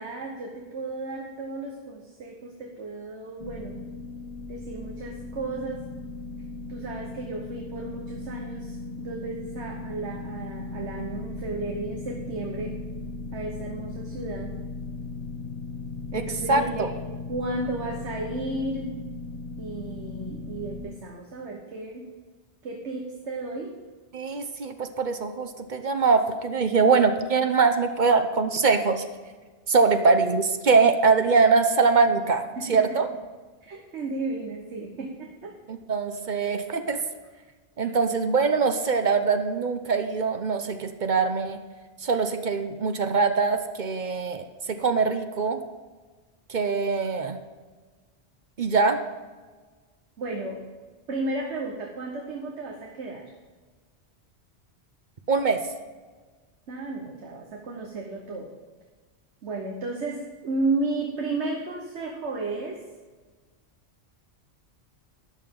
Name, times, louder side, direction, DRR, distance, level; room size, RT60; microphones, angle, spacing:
voice 1, 0.0-3.8 4.5-5.9 6.7-12.7 13.3-14.5 16.1-16.9 17.3-19.0 19.6-22.1 22.6-23.7 32.6-33.0 33.6-35.6 50.2-50.6 51.1-53.3 56.7-58.5 59.4-62.8, right 2 dB, 85° right, 0 dB, 1.5 m, -33 dB
sound 1, 3.4-20.8, left 3 dB, 30° left, 0.9 m, -37 dB
voice 2, 16.5-16.9 24.1-29.0 29.7-33.1 35.7-37.0 37.8-41.6 42.0-45.6 46.5-47.4 48.6-49.0 55.3-55.6, right 4 dB, 50° right, 8 dB, 0.8 m, -23 dB
13.0 x 10.5 x 3.7 m, 1.4 s
omnidirectional pair, 1.1 m